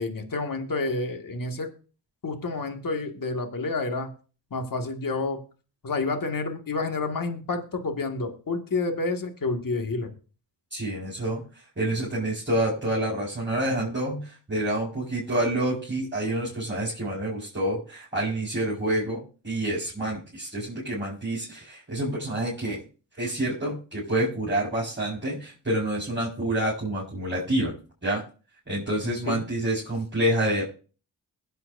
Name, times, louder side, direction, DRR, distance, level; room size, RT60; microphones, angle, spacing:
voice 1, 0.0-1.7 2.2-4.1 4.5-5.4 5.8-10.1 29.0-29.4, left 3 dB, 55° left, 5 dB, 2.1 m, -29 dB
voice 2, 10.7-11.4 11.8-22.8 23.2-27.7 28.0-28.2 28.7-30.6, right 1 dB, 30° right, -6 dB, 5.1 m, -28 dB
21.5 x 8.0 x 2.7 m, 0.37 s
cardioid pair, 45°, 40 cm